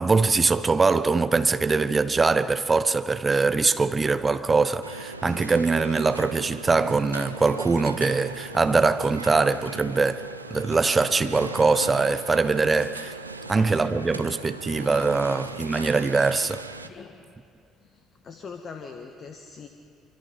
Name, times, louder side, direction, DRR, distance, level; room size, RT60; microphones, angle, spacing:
voice 1, 0.0-10.2 10.5-13.1 13.5-16.6, right 4 dB, 25° right, 1.0 m, -22 dB
sound 1, 4.8-16.9, right 3 dB, 90° right, 0.6 m, -40 dB
voice 2, 16.8-17.3 17.8-19.7, left 5 dB, 40° left, 1.6 m, -42 dB
26.0 x 25.0 x 5.4 m
figure-of-eight pair, 55°, 0 cm